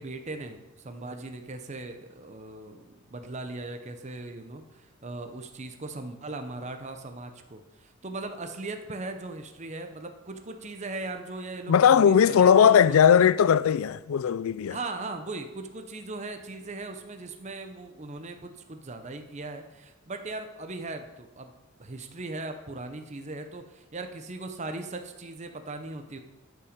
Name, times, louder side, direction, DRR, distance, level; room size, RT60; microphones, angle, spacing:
voice 1, 0.0-12.7 13.1-13.2 14.7-21.5 21.8-26.2, right 2 dB, 35° right, 0.7 m, -39 dB
voice 2, 11.7-14.8, left 8 dB, 80° left, 0.4 m, -19 dB
12.5 x 5.8 x 5.2 m
head